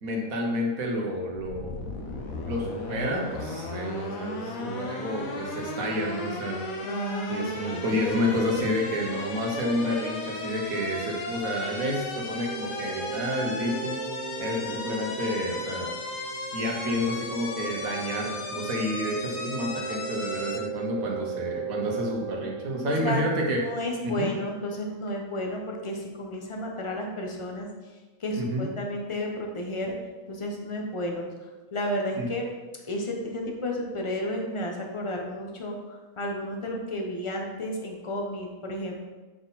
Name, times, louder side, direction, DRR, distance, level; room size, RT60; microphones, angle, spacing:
voice 1, 0.0-2.0 2.5-6.7 7.3-14.0 14.4-15.9 16.5-23.6 24.0-24.3 28.4-28.7 32.2-32.3, equal, 85° right, 0 dB, 1.6 m, -29 dB
sound 1, 1.4-20.6, left 3 dB, 90° left, 1.3 m, -36 dB
voice 2, 6.8-8.0 23.0-27.7 28.2-29.9 30.3-31.3 31.7-32.5 32.9-39.1, left 1 dB, 25° left, 1 dB, 0.8 m, -32 dB
sound 2, 12.5-24.1, right 6 dB, 45° right, 0.6 m, -38 dB
7.8 x 4.0 x 4.0 m, 1.3 s
omnidirectional pair, 1.4 m